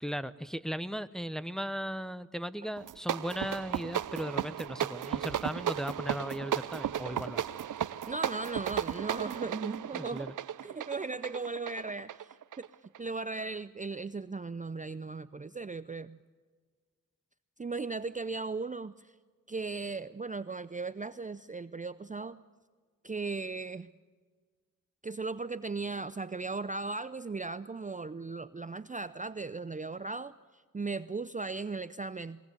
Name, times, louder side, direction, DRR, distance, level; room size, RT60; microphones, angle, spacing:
voice 1, 0.0-7.5 9.9-10.3, equal, ahead, 12 dB, 0.9 m, -37 dB
sound 1, 2.8-13.1, right 10 dB, 70° right, 0.6 m, -35 dB
voice 2, 8.1-10.3 10.6-12.3 12.6-16.2 17.6-19.1 19.5-22.4 23.0-23.9 25.0-32.4, right 3 dB, 25° right, 14 dB, 0.6 m, -37 dB
22.0 x 18.0 x 8.1 m, 1.5 s
cardioid pair, 50°, 32 cm